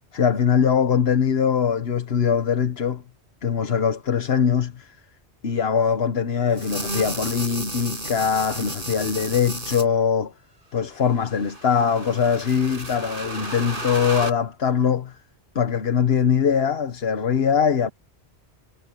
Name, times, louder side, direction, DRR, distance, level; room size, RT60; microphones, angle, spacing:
voice 1, 0.1-3.0 3.4-4.9 5.4-10.3 10.7-15.1 15.5-17.9, left 7 dB, 60° left, 1.4 m, -22 dB
sound 1, 6.5-9.8 11.0-14.3, right 1 dB, 50° right, 6.4 m, -33 dB
omnidirectional pair, 1.2 m